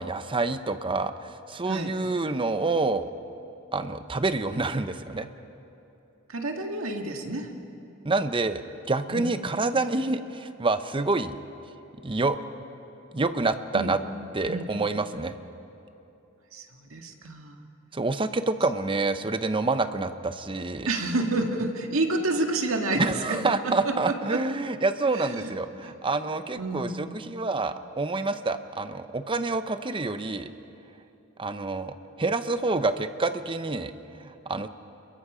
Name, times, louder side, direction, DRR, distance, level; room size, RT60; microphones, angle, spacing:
voice 1, 0.0-3.1 3.7-5.3 8.0-8.6 8.9-11.3 12.0-12.4 13.1-14.0 14.3-15.4 17.9-20.9 23.0-30.5 31.4-34.7, right 3 dB, 25° right, 10 dB, 0.7 m, -27 dB
voice 2, 6.3-7.5 9.1-9.3 13.7-14.0 14.5-14.7 16.5-17.6 20.9-24.7 25.1-25.6 25.8-26.0 26.6-27.0, right 2 dB, 80° right, 3 dB, 1.9 m, -29 dB
29.0 x 22.5 x 5.0 m, 2.9 s
head